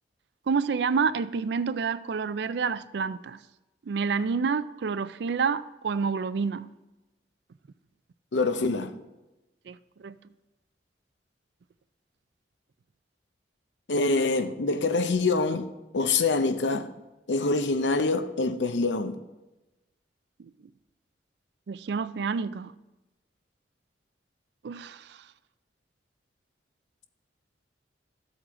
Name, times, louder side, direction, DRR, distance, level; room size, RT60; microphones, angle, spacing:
voice 1, 0.5-3.4 3.9-6.7 9.7-10.2 20.4-20.5 21.7-22.7 24.6-25.2, right 5 dB, 70° right, 0.4 m, -28 dB
voice 2, 8.3-9.0 13.9-15.7 15.9-16.9 17.3-19.2, left 3 dB, 85° left, 0.7 m, -25 dB
13.5 x 7.9 x 3.7 m
head